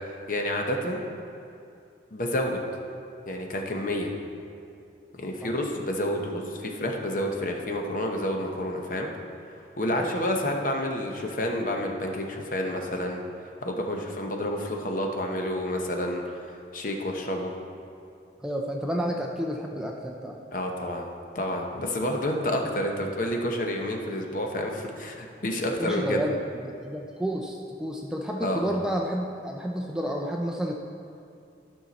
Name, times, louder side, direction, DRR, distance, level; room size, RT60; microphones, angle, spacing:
voice 1, 0.3-1.0 2.1-2.6 3.3-4.1 5.2-9.1 9.8-13.2 13.6-16.2 16.7-17.5 20.5-21.1 21.3-26.2 28.4-28.6, left 1 dB, 45° left, 2 dB, 0.8 m, -29 dB
voice 2, 18.4-20.4 25.7-30.7, equal, 5° right, 0 dB, 0.4 m, -30 dB
12.0 x 5.7 x 4.1 m, 2.6 s
head